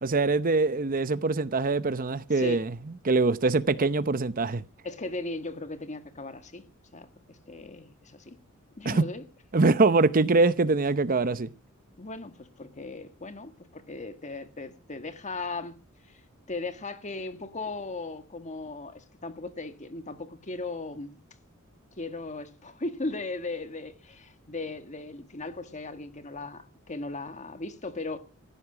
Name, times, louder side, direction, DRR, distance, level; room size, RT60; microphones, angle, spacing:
voice 1, 0.0-2.7 3.0-4.6 8.8-9.0 9.5-11.5, right 3 dB, 40° right, 0.8 m, -23 dB
voice 2, 4.8-6.6 6.9-8.4 8.8-9.2 12.0-15.8 16.1-16.2 16.5-21.2 22.0-28.2, left 3 dB, 35° left, 1.6 m, -37 dB
16.5 x 14.5 x 5.0 m
head